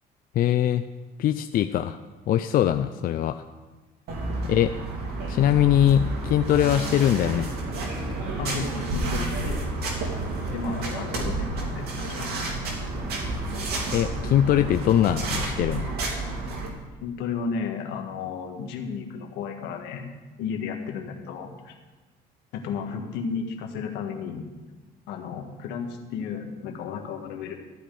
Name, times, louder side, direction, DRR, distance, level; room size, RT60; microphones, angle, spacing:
voice 1, 0.4-0.8 1.2-2.0 2.3-3.4 4.5-4.7 5.3-7.5 13.9-15.9 16.2-16.3, left 11 dB, 60° left, 9 dB, 0.5 m, -22 dB
sound 1, 4.1-16.7, right 2 dB, 70° right, 3.0 m, -30 dB
voice 2, 8.4-9.7 10.5-12.3 17.0-20.1 20.4-21.7 22.5-24.5 25.1-27.5, left 5 dB, 90° left, 4 dB, 1.7 m, -33 dB
14.0 x 5.1 x 9.1 m, 1.2 s
cardioid pair, 110°, 17 cm